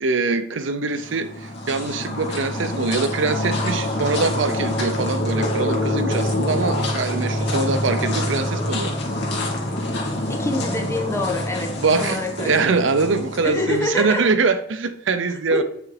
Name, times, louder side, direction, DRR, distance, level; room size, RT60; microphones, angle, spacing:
voice 1, 0.0-8.9 11.8-15.6, right 4 dB, 80° right, 0.7 m, -23 dB
sound 1, 0.9-14.3, left 1 dB, 65° left, 2.1 m, -26 dB
voice 2, 10.3-11.7 12.0-12.7 13.4-14.3 15.3-15.6, left 2 dB, 15° left, 1.3 m, -26 dB
8.9 x 5.0 x 4.7 m
head